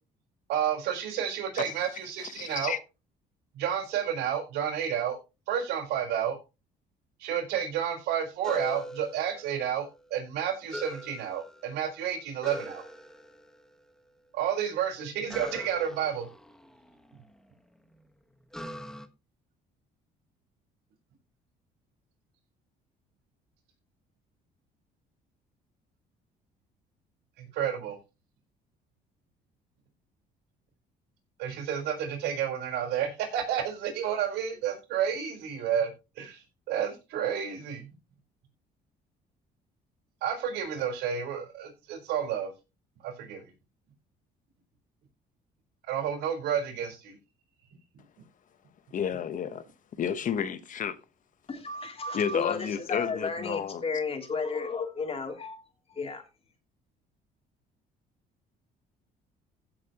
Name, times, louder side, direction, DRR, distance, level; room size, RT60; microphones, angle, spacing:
voice 1, 0.5-2.8 3.5-5.2 5.5-6.4 7.2-12.9 14.3-16.3 27.4-28.0 31.4-35.9 36.2-37.9 40.2-42.5 43.0-43.5 45.9-47.2, right 9 dB, 85° right, 4.5 m, -30 dB
voice 2, 2.2-2.8 48.9-49.6 50.0-51.0 52.1-53.8, left 8 dB, 50° left, 1.2 m, -31 dB
sound 1, 8.4-9.9 10.7-11.9 12.4-13.7 15.3-17.4 18.5-19.1, equal, 5° left, 1.4 m, -41 dB
voice 3, 51.5-56.2, left 4 dB, 35° left, 3.1 m, -33 dB
16.0 x 7.5 x 3.0 m
cardioid pair, 110°, 17 cm